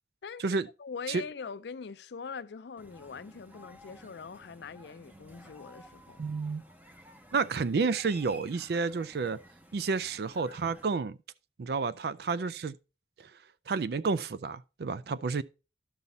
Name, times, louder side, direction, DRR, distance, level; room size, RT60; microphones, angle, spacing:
voice 1, 0.2-6.2, left 5 dB, 70° left, 0.4 m, -43 dB
sound 1, 2.8-10.9, equal, 10° right, 0.7 m, -54 dB
voice 2, 6.2-6.6 7.3-9.4 9.7-11.2 11.6-12.7 13.2-13.3 13.7-15.4, right 4 dB, 60° right, 0.4 m, -30 dB
12.0 x 5.5 x 4.1 m
head